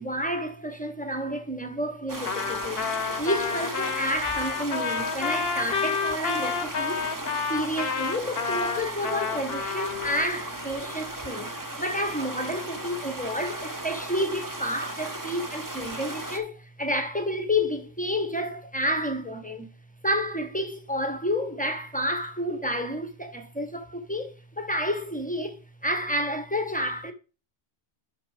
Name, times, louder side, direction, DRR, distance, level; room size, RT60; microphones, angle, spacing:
voice 1, 0.0-2.8 3.2-7.1 7.5-11.5 11.8-19.7 20.0-25.6 25.8-27.1, equal, 10° left, 0.9 m, -30 dB
sound 1, 2.1-16.4, right 1 dB, 20° right, 1.0 m, -36 dB
Trumpet, 2.2-10.3, left 6 dB, 65° left, 1.1 m, -30 dB
6.3 x 5.5 x 4.9 m
omnidirectional pair, 1.1 m